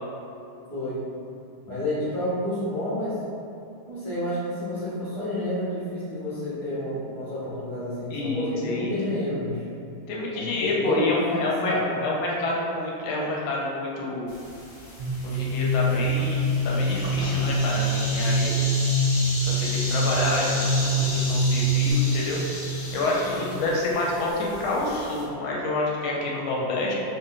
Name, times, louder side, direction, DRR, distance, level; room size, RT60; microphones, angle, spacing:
voice 1, 0.7-1.0 1.6-3.2 3.9-9.7 10.3-12.0 20.7-21.3 23.3-23.7, left 1 dB, 35° right, -15 dB, 0.5 m, -30 dB
voice 2, 8.1-8.9 10.1-11.8 12.0-14.3 15.2-18.5 19.4-22.4 22.9-26.9, left 2 dB, 80° left, -4 dB, 1.4 m, -28 dB
sound 1, 14.3-25.2, left 1 dB, 65° left, 0.5 m, -35 dB
sound 2, 15.0-21.9, right 1 dB, 75° right, 0.9 m, -24 dB
3.3 x 2.2 x 3.8 m, 2.7 s
omnidirectional pair, 2.3 m